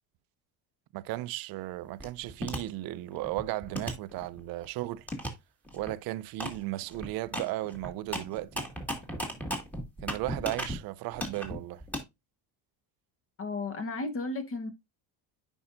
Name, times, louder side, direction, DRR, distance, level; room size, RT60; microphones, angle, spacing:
voice 1, 0.9-5.1 5.7-8.7 10.0-11.8, right 16 dB, 55° right, 0.5 m, -35 dB
sound 1, 2.0-2.6 3.1-4.6 5.1-5.3 5.7-5.9 6.4-6.6 6.8-10.8 11.1-12.0, equal, 5° left, 1.7 m, -35 dB
voice 2, 13.4-14.7, left 3 dB, 30° left, 1.1 m, -34 dB
8.6 x 5.4 x 2.4 m
cardioid pair, 120°, 42 cm